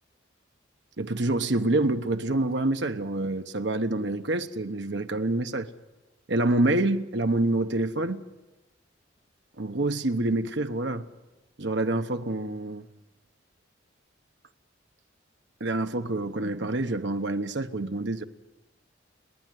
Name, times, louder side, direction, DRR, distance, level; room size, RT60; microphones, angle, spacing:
voice 1, 1.0-5.7 6.3-8.2 9.6-11.1 11.6-12.8 15.6-18.2, right 2 dB, 65° right, 1.1 m, -27 dB
30.0 x 11.0 x 9.4 m
head